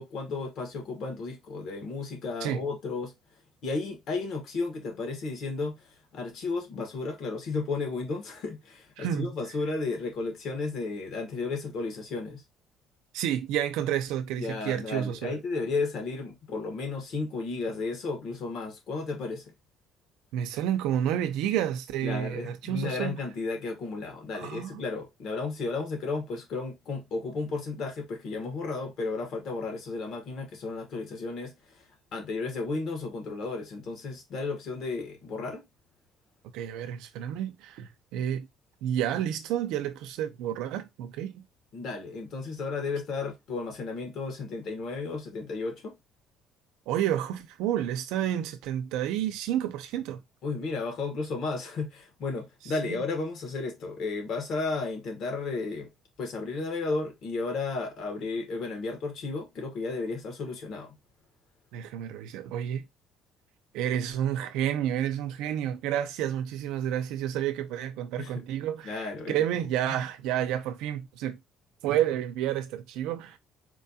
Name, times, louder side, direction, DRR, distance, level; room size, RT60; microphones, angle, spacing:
voice 1, 0.0-3.1 3.6-12.4 14.4-19.5 22.0-35.7 41.7-45.9 50.4-55.9 56.2-61.0 68.2-68.4 68.8-69.4, left 3 dB, 55° left, 1.3 m, -33 dB
voice 2, 9.0-9.3 13.1-15.3 20.3-23.2 24.3-24.8 36.5-38.5 38.8-41.5 46.9-50.2 52.8-53.0 61.7-62.8 63.7-71.4 71.8-73.4, right 10 dB, 90° right, 0.6 m, -30 dB
4.3 x 2.3 x 2.8 m
cardioid pair, 145°, 0 cm